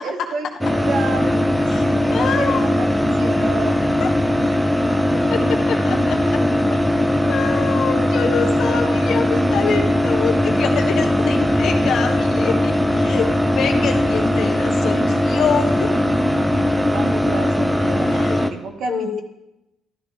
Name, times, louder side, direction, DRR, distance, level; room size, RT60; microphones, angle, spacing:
voice 1, 0.0-1.5 1.9-3.8 16.9-19.2, right 3 dB, 55° right, 5 dB, 1.3 m, -30 dB
sound 1, 0.6-18.5, left 1 dB, ahead, 0.6 m, -19 dB
voice 2, 2.1-2.7 4.0-4.1 5.3-5.4 5.7-6.2 6.7-15.9 16.5-16.8 18.0-18.5 18.9-19.2, left 6 dB, 60° left, 3 dB, 1.2 m, -26 dB
13.0 x 12.5 x 3.3 m, 0.92 s
cardioid pair, 165°, 0 cm